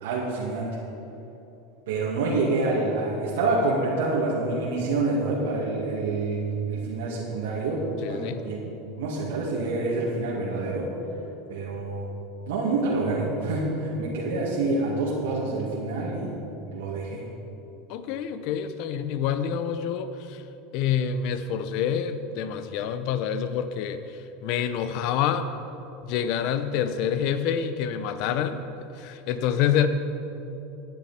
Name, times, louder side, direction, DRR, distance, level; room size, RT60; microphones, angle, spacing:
voice 1, 0.0-0.8 1.9-8.6 9.0-10.9 11.5-12.1 12.5-16.4 16.7-17.2, right 3 dB, 85° right, -6 dB, 2.1 m, -27 dB
voice 2, 8.0-8.4 17.9-20.4 20.7-25.5 26.1-28.6 29.0-29.9, left 8 dB, 60° left, 11 dB, 0.7 m, -27 dB
12.5 x 10.0 x 4.3 m, 3.0 s
supercardioid pair, 115°, 0 cm